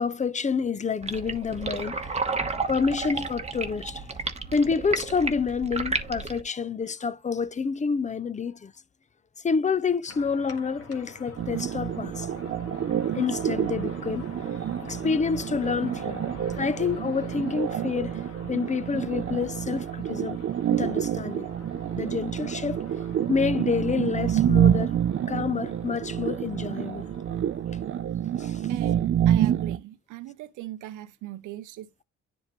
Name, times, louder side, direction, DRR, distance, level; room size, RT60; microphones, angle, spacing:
voice 1, 0.0-2.3 2.7-4.1 4.5-8.7 9.4-12.3 13.1-14.3 14.9-16.2 16.6-18.2 18.5-20.4 20.7-21.5 22.0-22.8 23.3-24.9 25.3-27.1 28.4-28.6, left 5 dB, 25° left, 0.5 m, -28 dB
sound 1, 1.0-6.4, right 4 dB, 20° right, 1.0 m, -32 dB
sound 2, 10.1-28.0, left 3 dB, 50° left, 1.6 m, -46 dB
sound 3, 11.4-29.8, right 10 dB, 45° right, 0.5 m, -28 dB
voice 2, 28.7-32.0, right 14 dB, 85° right, 0.7 m, -40 dB
10.0 x 3.6 x 3.0 m
cardioid pair, 90°, 30 cm